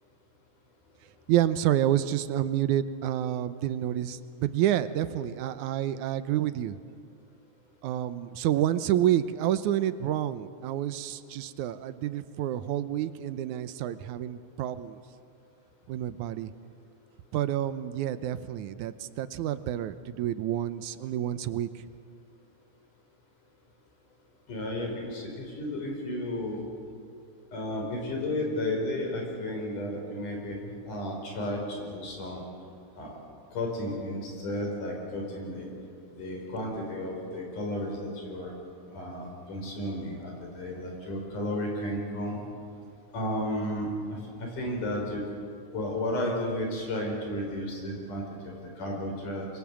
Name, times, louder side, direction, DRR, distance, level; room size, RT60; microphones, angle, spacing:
voice 1, 1.3-6.8 7.8-15.0 15.9-16.5 17.3-21.8, right 12 dB, 80° right, 13 dB, 2.2 m, -29 dB
voice 2, 24.5-26.6 27.5-30.6 30.9-32.4 33.0-33.1 33.5-35.7 36.1-38.5 38.9-42.4 43.1-45.2 45.7-49.5, left 1 dB, 85° left, 1 dB, 6.5 m, -33 dB
27.0 x 23.0 x 7.6 m, 2.4 s
omnidirectional pair, 3.5 m